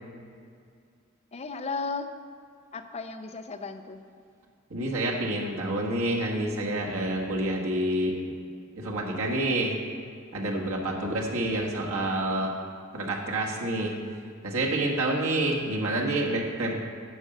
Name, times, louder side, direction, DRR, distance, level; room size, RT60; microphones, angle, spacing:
voice 1, 1.3-2.1 2.7-4.0 10.9-11.2, left 4 dB, 30° left, 7 dB, 0.5 m, -35 dB
voice 2, 4.7-8.1 8.8-9.7 10.3-12.5 12.9-13.9 14.4-16.8, right 1 dB, 85° right, -2 dB, 1.6 m, -28 dB
9.8 x 5.4 x 6.6 m, 2.3 s
head